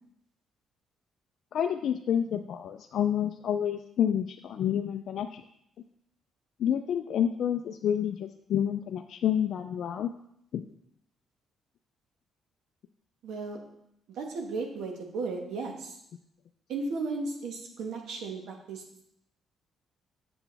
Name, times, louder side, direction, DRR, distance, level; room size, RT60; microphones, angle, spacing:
voice 1, 1.5-5.4 6.6-10.1 10.5-10.6, left 9 dB, 70° left, 6 dB, 0.4 m, -29 dB
voice 2, 13.2-13.6 14.1-16.0 16.7-18.8, right 3 dB, 80° right, 2 dB, 1.4 m, -35 dB
8.0 x 7.0 x 3.4 m, 0.76 s
cardioid pair, 90°, 0 cm